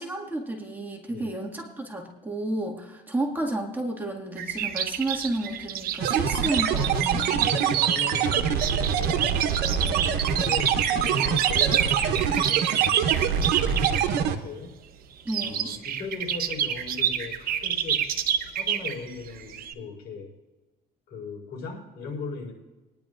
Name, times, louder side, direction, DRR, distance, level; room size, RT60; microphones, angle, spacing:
voice 1, 0.0-7.5 9.8-10.1 15.3-15.7, right 1 dB, 10° right, 0 dB, 2.0 m, -32 dB
sound 1, 4.4-14.1 15.2-19.7, right 9 dB, 60° right, 0.9 m, -28 dB
sound 2, 6.0-14.4, right 7 dB, 85° right, 1.0 m, -25 dB
voice 2, 7.4-9.4 10.0-14.7 15.4-18.1 18.5-20.3 21.1-22.5, left 4 dB, 75° left, -2 dB, 4.4 m, -38 dB
21.5 x 10.5 x 2.5 m, 1.2 s
cardioid pair, 110°, 17 cm